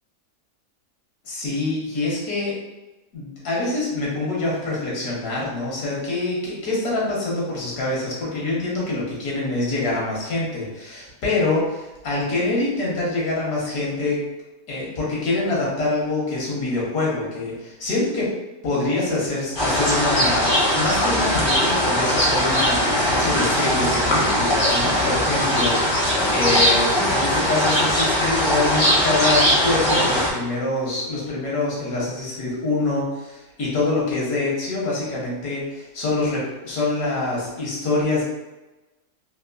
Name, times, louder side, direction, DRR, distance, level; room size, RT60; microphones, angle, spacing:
voice 1, 1.2-2.5 3.1-14.2 14.7-18.3 18.6-25.8 26.3-38.2, left 2 dB, 80° left, -5 dB, 1.6 m, -25 dB
sound 1, 19.5-30.3, equal, 35° left, 0.4 m, -20 dB
3.5 x 2.5 x 2.5 m, 1.1 s
omnidirectional pair, 1.6 m